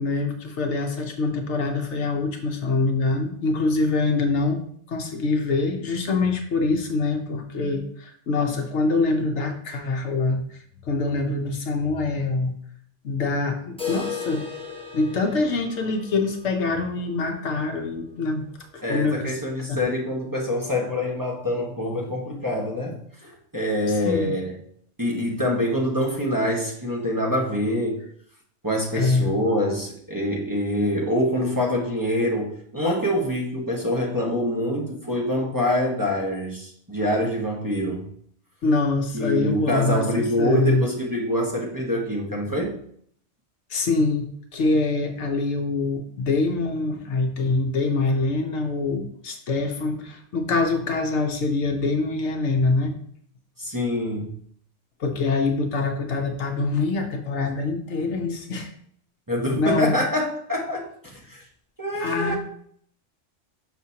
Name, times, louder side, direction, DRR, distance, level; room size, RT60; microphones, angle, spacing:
voice 1, 0.0-4.6 4.9-10.6 10.9-12.5 13.0-14.5 14.9-18.4 18.7-19.3 19.7-19.8 23.9-24.3 28.9-29.3 38.6-40.1 40.4-40.8 43.7-52.9 55.0-58.7 59.6-59.9 62.0-62.4, left 3 dB, 70° left, 4 dB, 1.0 m, -24 dB
sound 1, 13.8-19.6 19.9-20.0 20.4-20.5 21.0-21.1 21.9-22.0, left 6 dB, 5° left, 1.1 m, -37 dB
voice 2, 18.8-23.0 23.2-24.5 25.0-28.0 28.6-38.1 39.1-42.7 53.6-54.3 59.3-61.4 61.8-62.4, left 1 dB, 15° right, -3 dB, 1.1 m, -25 dB
6.4 x 6.0 x 2.8 m, 0.64 s
omnidirectional pair, 1.3 m